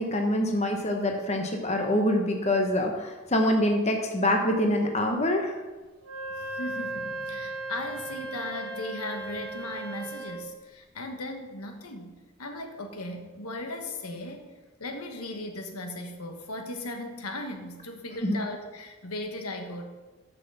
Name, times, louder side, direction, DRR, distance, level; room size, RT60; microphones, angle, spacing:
voice 1, 0.0-5.5 18.2-18.4, left 1 dB, 30° left, 3 dB, 0.9 m, -25 dB
Wind instrument woodwind instrument, 6.0-10.5, right 2 dB, 70° right, 1.2 m, -36 dB
voice 2, 6.3-14.5 14.8-19.8, left 2 dB, 85° left, 4 dB, 1.3 m, -37 dB
7.3 x 6.2 x 6.8 m, 1.2 s
head